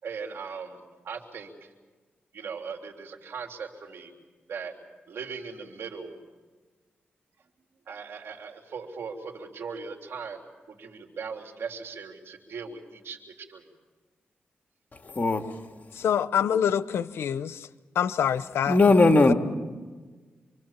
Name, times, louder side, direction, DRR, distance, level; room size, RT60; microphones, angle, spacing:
voice 1, 0.0-1.7 2.3-4.1 4.5-4.7 5.1-6.2 7.9-10.4 10.7-13.6, right 5 dB, 75° right, 2 dB, 3.4 m, -39 dB
voice 2, 15.0-15.5 18.7-19.3, left 2 dB, 40° left, 5 dB, 2.2 m, -18 dB
voice 3, 16.0-17.5 18.0-18.8 19.3-19.4, left 8 dB, 90° left, 15 dB, 0.7 m, -25 dB
27.0 x 24.0 x 7.5 m, 1.4 s
cardioid pair, 65°, 4 cm